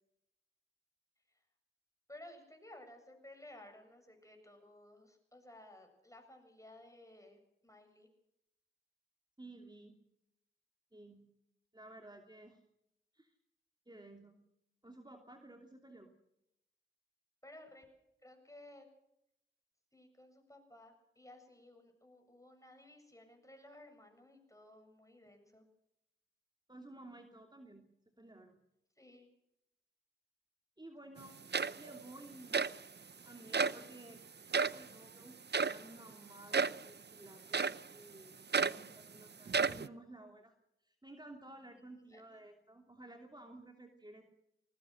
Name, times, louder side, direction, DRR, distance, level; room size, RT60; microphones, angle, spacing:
voice 1, 2.1-8.1 17.4-17.8 18.2-18.9 19.9-25.6 29.0-29.3 32.4-32.5 41.8-42.4, left 1 dB, 15° left, 5 dB, 7.3 m, -57 dB
voice 2, 9.4-10.0 10.9-11.3 11.7-12.6 13.1-13.3 13.9-14.4 14.8-16.1 26.7-27.8 28.2-28.6 30.8-31.3 31.8-32.6 33.2-40.5 40.8-44.2, right 2 dB, 20° right, 3 dB, 2.9 m, -54 dB
sound 1, 31.2-31.3 31.5-32.0 32.5-32.8 33.5-33.8 34.5-34.8 35.5-35.8 36.5-36.8 37.5-37.9 38.5-38.9 39.5-39.9, right 5 dB, 55° right, 0.7 m, -32 dB
20.0 x 19.5 x 6.6 m, 0.81 s
cardioid pair, 45°, 21 cm